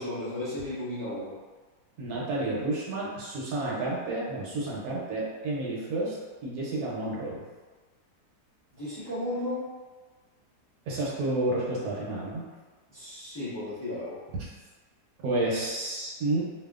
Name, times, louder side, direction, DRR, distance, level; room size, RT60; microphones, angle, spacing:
voice 1, 0.0-1.3 8.8-9.6 12.9-14.2, left 1 dB, 10° left, -12 dB, 0.8 m, -34 dB
voice 2, 2.0-6.1 6.4-7.4 10.9-12.5 15.2-16.4, right 2 dB, 75° right, -5 dB, 1.0 m, -30 dB
2.7 x 2.3 x 2.3 m, 1.3 s
omnidirectional pair, 1.7 m